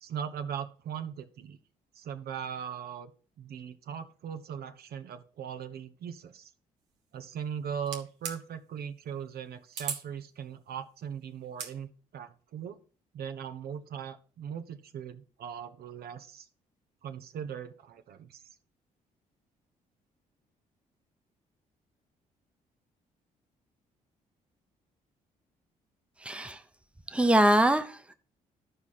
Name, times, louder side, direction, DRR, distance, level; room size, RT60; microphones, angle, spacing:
voice 1, 0.0-1.6 2.0-3.1 3.4-6.5 7.1-12.8 13.1-16.5 17.0-18.4, right 8 dB, 60° right, 0.7 m, -39 dB
sound 1, 7.8-8.4 9.7-10.0 11.4-11.7, right 7 dB, 80° right, 1.1 m, -36 dB
voice 2, 26.2-26.6 27.1-28.1, right 1 dB, 5° right, 0.8 m, -24 dB
12.0 x 4.7 x 4.2 m
hypercardioid pair, 50°, 18 cm